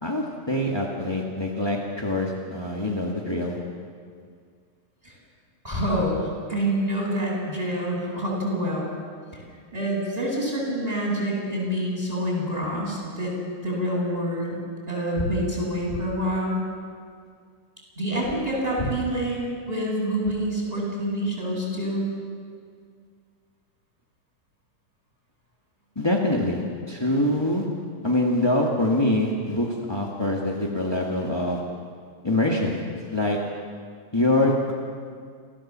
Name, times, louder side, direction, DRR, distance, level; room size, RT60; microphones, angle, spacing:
voice 1, 0.0-3.6 25.9-26.6 26.9-27.7 28.0-31.6 32.2-33.4 34.1-34.7, left 1 dB, 15° left, -2 dB, 0.9 m, -24 dB
voice 2, 5.6-8.9 9.7-13.3 13.6-14.6 14.9-16.6 18.0-22.0, equal, 10° right, -3 dB, 7.2 m, -27 dB
28.5 x 15.0 x 7.5 m, 2.1 s
omnidirectional pair, 3.9 m